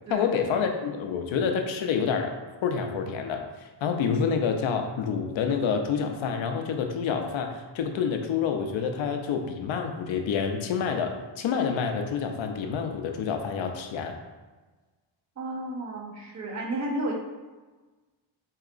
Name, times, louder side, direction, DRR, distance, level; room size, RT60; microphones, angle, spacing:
voice 1, 0.1-2.3 2.6-3.4 3.8-14.1, left 6 dB, 75° left, 5 dB, 0.6 m, -28 dB
voice 2, 15.4-17.1, right 1 dB, 35° right, -1 dB, 0.7 m, -32 dB
4.7 x 2.9 x 2.4 m, 1.3 s
wide cardioid pair, 145°, 46 cm